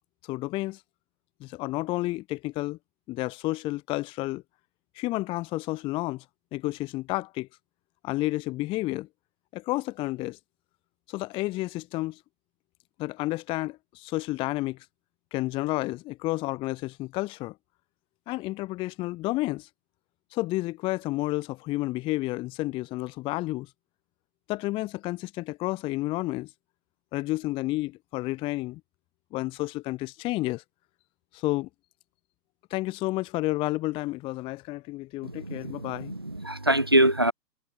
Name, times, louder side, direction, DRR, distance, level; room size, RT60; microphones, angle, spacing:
voice 1, 0.2-0.8 1.4-2.8 3.1-4.4 5.0-6.2 6.5-7.5 8.0-9.1 9.5-10.4 11.1-12.2 13.0-14.8 15.3-17.6 18.3-19.7 20.3-23.7 24.5-26.5 27.1-28.8 29.3-30.6 31.3-31.7 32.7-36.1, left 19 dB, 10° left, 0.7 m, -31 dB
voice 2, 35.3-37.3, right 1 dB, 15° right, 0.4 m, -24 dB
figure-of-eight pair, 130°, 48 cm